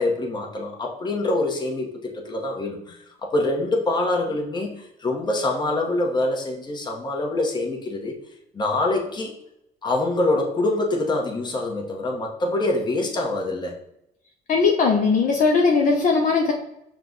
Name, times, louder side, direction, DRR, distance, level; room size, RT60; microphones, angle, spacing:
voice 1, 0.0-8.1 8.5-9.3 9.8-13.8, left 2 dB, 25° left, 0 dB, 1.0 m, -25 dB
voice 2, 14.5-16.5, left 4 dB, 50° left, 1 dB, 0.7 m, -19 dB
5.8 x 2.3 x 3.8 m, 0.81 s
cardioid pair, 110°, 17 cm